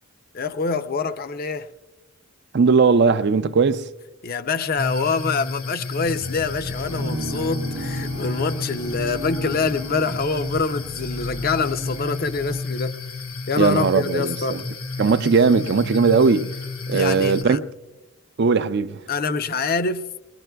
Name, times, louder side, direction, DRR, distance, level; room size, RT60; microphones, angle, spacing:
voice 1, 0.3-1.7 4.2-12.9 13.5-14.6 16.9-17.6 19.1-20.1, left 4 dB, 45° left, 0.5 m, -25 dB
voice 2, 2.5-3.8 13.6-14.6 15.0-16.5 16.9-17.6 18.4-19.0, right 5 dB, 50° right, 0.4 m, -18 dB
sound 1, 4.8-17.4, left 3 dB, 75° left, 1.1 m, -31 dB
sound 2, 6.0-12.6, right 1 dB, 80° right, 0.7 m, -35 dB
22.0 x 20.0 x 2.2 m
head